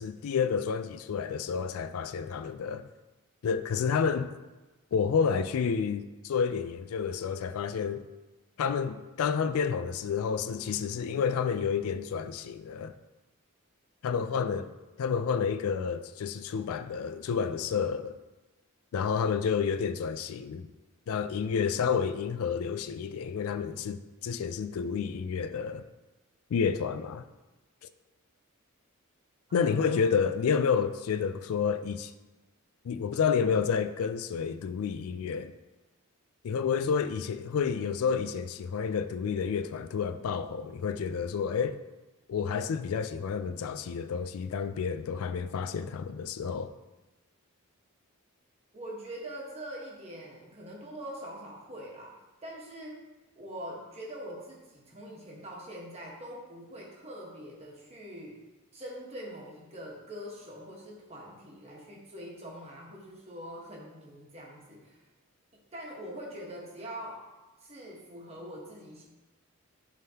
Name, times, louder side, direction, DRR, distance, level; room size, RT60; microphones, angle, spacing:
voice 1, 0.0-2.8 3.4-4.4 4.9-8.1 8.6-12.9 14.0-14.7 15.0-18.2 18.9-20.7 21.1-25.8 26.5-27.2 29.5-32.1 32.8-35.5 36.4-41.8 42.3-46.7, left 6 dB, 75° left, 0.3 m, -30 dB
voice 2, 14.2-14.7 29.5-29.9 48.7-52.1 52.4-53.1 53.4-58.5 58.7-65.0 65.7-67.2 67.6-69.0, equal, 30° right, 1.3 m, -43 dB
11.0 x 3.6 x 2.8 m
head